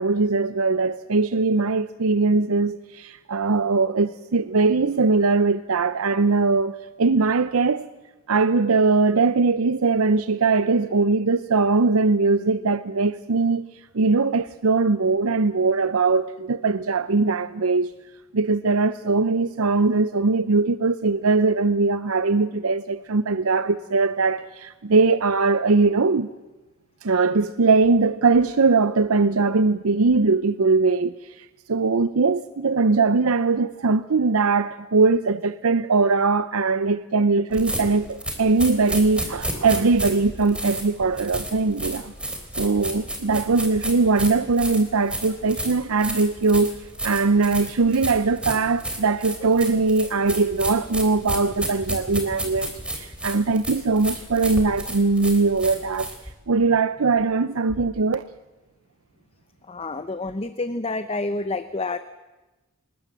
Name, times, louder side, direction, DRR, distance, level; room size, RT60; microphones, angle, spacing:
voice 1, 0.0-7.9 8.3-13.7 13.9-17.9 18.3-26.3 27.0-42.1 42.6-46.8 47.0-56.1 56.5-58.2, right 3 dB, 80° right, 0.7 m, -21 dB
sound 1, 37.5-56.3, right 1 dB, 5° right, 3.3 m, -31 dB
voice 2, 59.7-62.0, left 3 dB, 30° left, 0.8 m, -28 dB
24.5 x 20.5 x 7.5 m
head